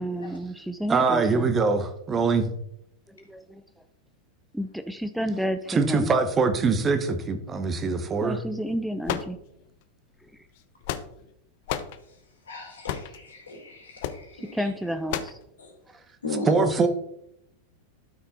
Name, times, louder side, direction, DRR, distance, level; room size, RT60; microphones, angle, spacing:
voice 1, 0.0-1.5 3.1-3.6 4.5-6.1 8.2-9.4 10.2-10.5 14.5-15.4, equal, ahead, 9 dB, 0.5 m, -31 dB
voice 2, 0.9-2.5 5.7-8.4 16.5-16.9, right 4 dB, 20° right, 8 dB, 1.1 m, -23 dB
sound 1, 9.0-9.8 10.6-11.3 11.7-12.0 12.9-13.2 14.0-14.2 15.1-15.4, left 10 dB, 50° left, 0.8 m, -31 dB
voice 3, 12.5-14.6 15.6-15.7 16.2-16.6, left 3 dB, 70° left, 0 dB, 3.5 m, -36 dB
12.5 x 5.8 x 4.1 m, 0.76 s
figure-of-eight pair, 90°, 0 cm